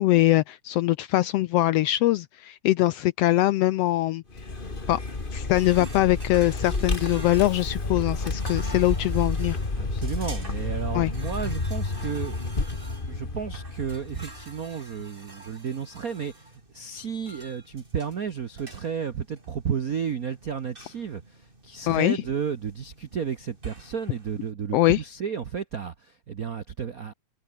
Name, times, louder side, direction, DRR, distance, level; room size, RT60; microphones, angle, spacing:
voice 1, 0.0-4.2 4.9-5.0 5.3-9.6 10.9-11.1 21.9-22.2 24.7-25.0, left 16 dB, 85° left, 1.4 m, -22 dB
Vehicle, 4.3-14.6, left 3 dB, 20° left, 2.2 m, -30 dB
sound 1, 5.5-24.5, right 2 dB, 15° right, 4.1 m, -48 dB
voice 2, 9.7-27.1, right 7 dB, 80° right, 0.7 m, -33 dB
omnidirectional pair, 3.4 m